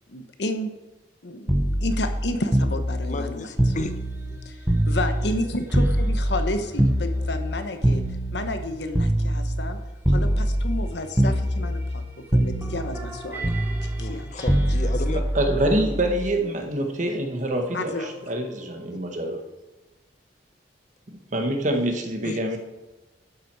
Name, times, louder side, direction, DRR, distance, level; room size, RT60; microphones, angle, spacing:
voice 1, 0.1-0.7 1.2-3.7 4.4-8.0 8.3-9.8 10.1-14.6 17.7-18.3, left 2 dB, 75° left, 7 dB, 1.1 m, -31 dB
sound 1, 1.5-5.4 5.7-9.7 10.0-10.9 11.2-12.1 12.3-16.3 17.5-17.8, right 1 dB, 15° right, 1.2 m, -24 dB
voice 2, 3.0-4.0 4.3-4.4 14.0-15.2 22.2-22.4, left 2 dB, 45° left, 9 dB, 0.7 m, -32 dB
voice 3, 15.1-19.4 21.3-22.6, right 1 dB, 45° right, 4 dB, 1.5 m, -26 dB
12.0 x 7.6 x 4.8 m, 1.1 s
head